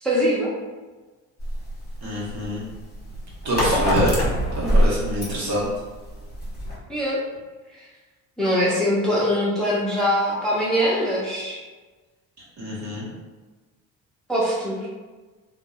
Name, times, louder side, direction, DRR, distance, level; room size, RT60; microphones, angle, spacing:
voice 1, 0.0-0.5 6.9-7.2 8.4-11.6 14.3-14.9, equal, ahead, -7 dB, 0.6 m, -22 dB
sound 1, 1.4-6.8, equal, 25° left, 1.1 m, -24 dB
voice 2, 2.0-2.6 3.4-4.2 4.5-5.7 12.6-13.1, equal, 45° right, -5 dB, 1.1 m, -26 dB
2.6 x 2.1 x 2.3 m, 1.3 s
hypercardioid pair, 55°, 40 cm